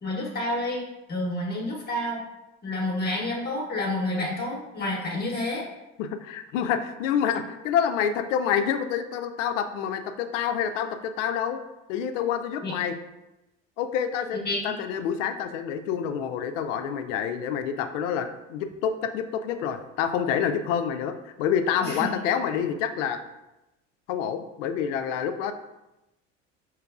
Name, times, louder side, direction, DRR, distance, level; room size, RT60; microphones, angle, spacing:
voice 1, 0.0-2.2 2.6-5.6 12.6-12.7 14.4-14.8 21.8-22.2, left 1 dB, 25° left, -3 dB, 0.9 m, -29 dB
voice 2, 6.0-11.6 11.9-12.9 13.8-23.2 24.1-25.5, left 8 dB, 75° left, 9 dB, 0.5 m, -27 dB
4.6 x 3.1 x 2.3 m, 0.97 s
hypercardioid pair, 75°, 37 cm